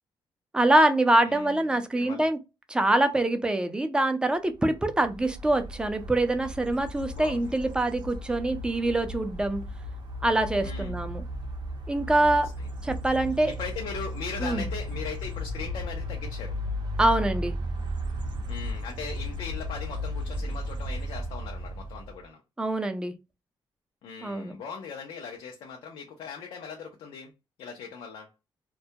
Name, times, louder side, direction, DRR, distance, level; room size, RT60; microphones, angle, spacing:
voice 1, 0.5-2.4 2.7-9.6 10.2-11.2 11.9-12.5 12.8-13.5 14.4-14.6 17.0-17.6 22.6-23.1 24.2-24.6, right 1 dB, 10° right, 0.4 m, -24 dB
voice 2, 1.2-2.2 7.1-7.5 10.6-11.0 12.2-12.9 13.5-16.6 18.5-22.4 24.0-27.3 27.6-28.3, left 5 dB, 85° left, 0.5 m, -39 dB
sound 1, 4.7-22.2, equal, 55° right, 0.6 m, -35 dB
2.2 x 2.1 x 2.7 m
cardioid pair, 110°, 9 cm